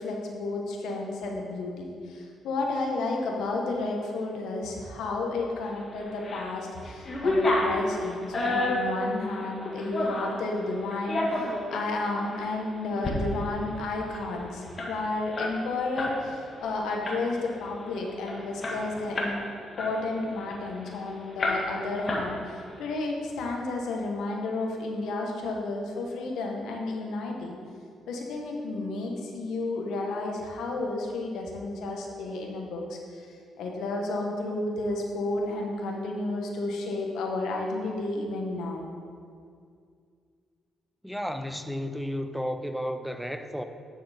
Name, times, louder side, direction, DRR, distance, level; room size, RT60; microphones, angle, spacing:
voice 1, 0.0-19.4 19.8-27.5 28.1-38.9, left 2 dB, 80° left, 0 dB, 1.4 m, -32 dB
sound 1, 6.0-6.5 6.8-10.4 10.9-11.9 12.3-12.5 12.9-13.2 13.5-13.6 13.8-16.2 16.5-16.7 17.0-17.5 17.9-18.0 18.3-19.4 19.8-20.9 21.4-21.8 22.1-22.7, left 1 dB, 35° left, 1.6 m, -30 dB
voice 2, 41.0-43.6, equal, ahead, 7 dB, 0.6 m, -32 dB
9.3 x 6.4 x 4.4 m, 2.2 s
cardioid pair, 90°, 0 cm